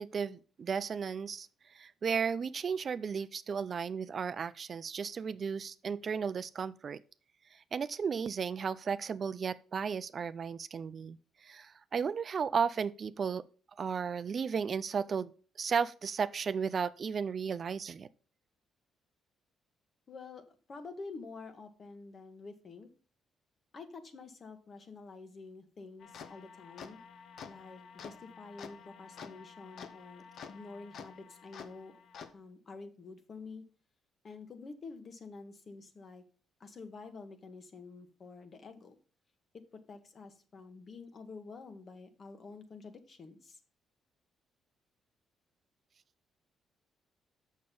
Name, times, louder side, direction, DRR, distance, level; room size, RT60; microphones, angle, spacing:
voice 1, 0.0-1.5 1.7-7.0 7.5-13.4 13.8-15.3 15.6-18.1, right 6 dB, 45° right, 0.4 m, -34 dB
voice 2, 20.1-22.9 23.7-27.0 27.4-31.9 32.3-33.6 34.2-36.2 36.6-38.9 39.5-39.6 39.9-43.6, left 4 dB, 45° left, 1.4 m, -48 dB
sound 1, 26.0-32.3, left 6 dB, 65° left, 0.8 m, -50 dB
6.8 x 6.4 x 5.4 m
cardioid pair, 90°, 0 cm